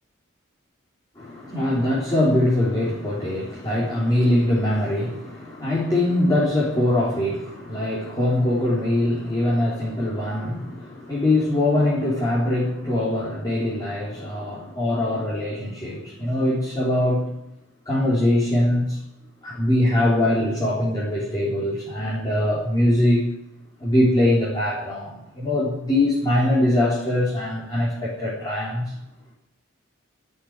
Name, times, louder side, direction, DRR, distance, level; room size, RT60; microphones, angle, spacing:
voice 1, 1.2-17.3 17.9-19.0 19.4-23.2 23.8-28.9, left 1 dB, 20° left, -6 dB, 3.7 m, -22 dB
13.0 x 8.5 x 9.6 m, 0.86 s
head